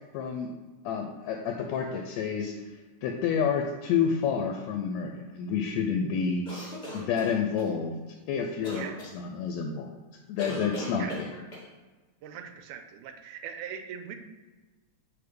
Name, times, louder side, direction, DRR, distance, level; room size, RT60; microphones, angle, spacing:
voice 1, 0.1-0.5 0.9-6.4 6.9-8.0 8.3-8.9 9.1-9.9 10.3-11.3, left 6 dB, 80° left, 3 dB, 1.7 m, -29 dB
sound 1, 6.4-7.7 8.6-9.1 10.4-11.7, left 1 dB, 35° left, 0.7 m, -38 dB
voice 2, 12.2-14.2, right 8 dB, 85° right, 7 dB, 2.1 m, -40 dB
7.9 x 3.3 x 5.2 m, 1.3 s
omnidirectional pair, 3.4 m